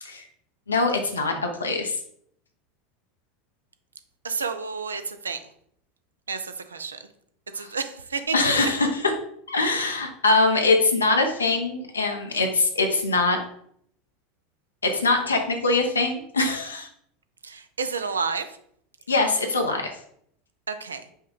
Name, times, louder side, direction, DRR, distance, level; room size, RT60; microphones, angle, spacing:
voice 1, 0.7-2.0 7.6-7.7 8.3-9.1 9.5-13.4 14.8-16.9 19.1-19.9, left 3 dB, 85° left, 3 dB, 0.6 m, -23 dB
voice 2, 4.2-5.4 6.3-7.0 7.5-8.3 17.4-18.5 20.7-21.0, right 5 dB, 85° right, 10 dB, 0.4 m, -30 dB
5.3 x 2.3 x 3.7 m, 0.68 s
figure-of-eight pair, 80°, 0 cm